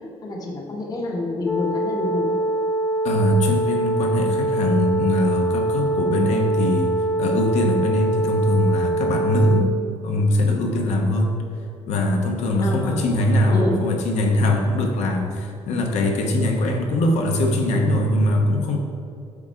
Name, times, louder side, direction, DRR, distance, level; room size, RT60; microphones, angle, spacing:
voice 1, 0.2-2.4 12.6-13.0 13.5-13.8, left 1 dB, 35° left, -1 dB, 1.1 m, -27 dB
sound 1, 1.5-9.6, right 1 dB, 10° left, 0.3 m, -23 dB
voice 2, 3.0-9.7 10.0-11.3 11.9-18.8, left 1 dB, 80° left, 2 dB, 1.1 m, -21 dB
8.7 x 3.8 x 4.5 m, 2.5 s
cardioid pair, 150°, 11 cm